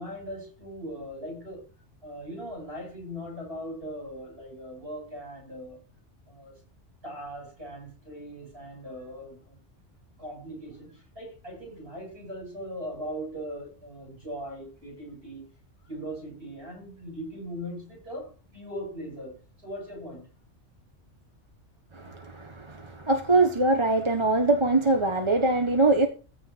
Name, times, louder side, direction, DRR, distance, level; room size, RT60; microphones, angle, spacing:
voice 1, 0.0-1.7 2.0-5.8 6.3-6.6 7.0-9.6 10.2-15.5 15.9-20.3, equal, 55° right, 8.2 m, -39 dB
voice 2, 21.9-26.1, right 2 dB, 25° right, 1.3 m, -23 dB
15.5 x 5.4 x 6.1 m
omnidirectional pair, 1.2 m